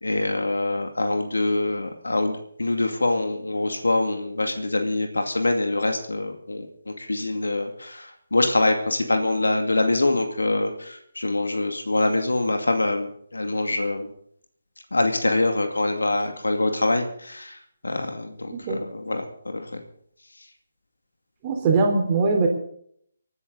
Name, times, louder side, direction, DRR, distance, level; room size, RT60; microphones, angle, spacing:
voice 1, 0.0-14.1 14.9-17.6 17.8-19.8, left 2 dB, 75° left, 4 dB, 2.4 m, -25 dB
voice 2, 18.5-18.8 21.4-22.5, right 4 dB, 25° right, 1 dB, 3.6 m, -21 dB
29.0 x 9.7 x 4.0 m, 0.64 s
figure-of-eight pair, 145°, 0 cm